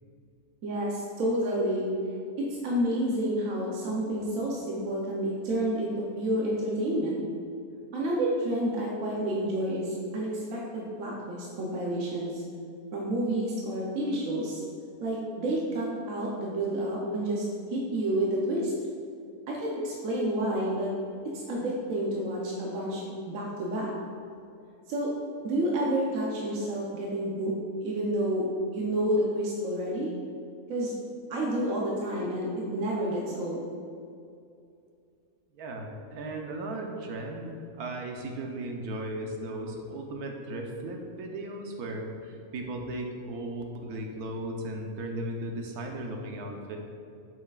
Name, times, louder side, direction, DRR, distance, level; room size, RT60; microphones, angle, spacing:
voice 1, 0.6-1.9 2.4-7.2 7.9-12.4 12.9-14.6 15.0-17.4 17.7-18.7 19.5-20.9 21.3-23.9 24.9-25.1 25.4-27.5 27.8-28.5 28.7-30.1 30.7-30.9 31.3-33.7, right 1 dB, 65° right, -3 dB, 1.1 m, -29 dB
voice 2, 35.5-46.8, right 1 dB, 90° right, 2 dB, 1.3 m, -36 dB
8.0 x 5.7 x 2.4 m, 2.5 s
omnidirectional pair, 1.6 m